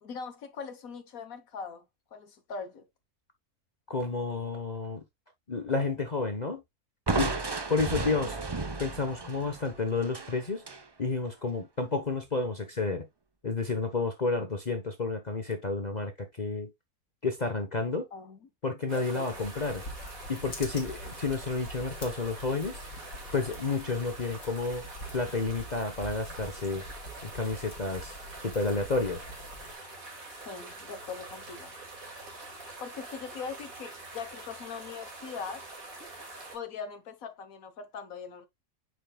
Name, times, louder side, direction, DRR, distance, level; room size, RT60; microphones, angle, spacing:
voice 1, 0.0-1.8 2.1-2.9 8.0-8.1 18.1-18.4 18.9-19.4 30.4-31.7 32.8-35.7 36.5-38.5, left 5 dB, 65° left, 1.5 m, -41 dB
voice 2, 3.9-5.0 5.5-6.6 7.1-7.4 7.7-10.6 11.0-13.1 13.4-16.7 17.2-18.1 18.6-19.8 20.3-22.8 23.3-24.8 25.1-26.9 27.2-29.3, left 3 dB, 30° left, 1.0 m, -31 dB
Crushing, 7.1-10.8, right 3 dB, 30° right, 0.4 m, -33 dB
sound 1, 18.9-36.6, right 2 dB, 65° right, 2.8 m, -45 dB
sound 2, 19.3-29.7, left 1 dB, 90° left, 2.3 m, -45 dB
7.8 x 5.8 x 2.3 m
omnidirectional pair, 1.6 m